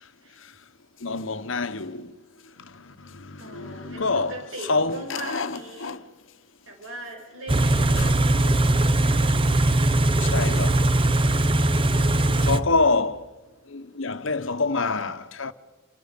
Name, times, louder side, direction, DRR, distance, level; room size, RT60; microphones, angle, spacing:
voice 1, 1.0-2.1 2.6-4.4 4.6-6.0 8.0-8.1 10.2-10.8 12.4-13.3 13.7-15.5, left 3 dB, 65° left, 1.2 m, -27 dB
voice 2, 3.4-6.0 6.7-9.5, right 1 dB, 70° right, 5.7 m, -40 dB
Car / Idling, 7.5-12.6, right 1 dB, 25° right, 1.0 m, -20 dB
28.5 x 27.0 x 5.3 m
head